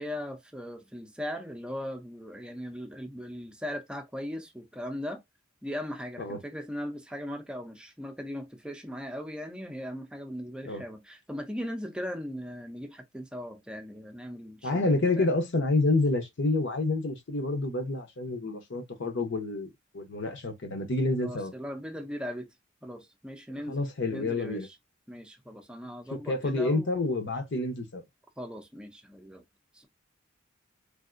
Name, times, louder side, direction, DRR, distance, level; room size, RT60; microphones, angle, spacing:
voice 1, 0.0-5.2 5.6-15.3 21.2-22.5 22.8-23.8 24.1-24.7 25.1-26.9 28.4-29.4 29.7-29.9, equal, 5° right, 0.5 m, -38 dB
voice 2, 14.6-21.5 23.7-24.7 26.1-28.0, left 2 dB, 60° left, 0.8 m, -28 dB
3.4 x 2.6 x 2.5 m
head